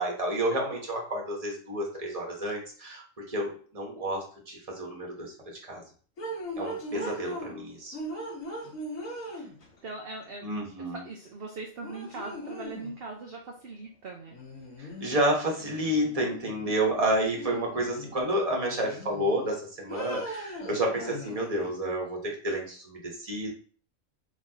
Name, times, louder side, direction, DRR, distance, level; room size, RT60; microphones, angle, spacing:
voice 1, 0.0-5.8 6.6-7.9 10.4-11.0 14.8-23.5, right 1 dB, 30° right, -1 dB, 1.2 m, -30 dB
sound 1, 6.2-7.6 7.9-9.8 11.3-11.4 11.8-12.9 14.3-15.3 15.6-16.8 17.3-18.2 18.6-19.5 19.9-21.7, equal, 80° left, 1.8 m, -39 dB
voice 2, 6.9-7.2 9.2-9.5 9.8-10.5 10.8-14.4, right 3 dB, 55° right, 0 dB, 0.8 m, -41 dB
5.9 x 2.9 x 2.9 m, 0.43 s
omnidirectional pair, 1.4 m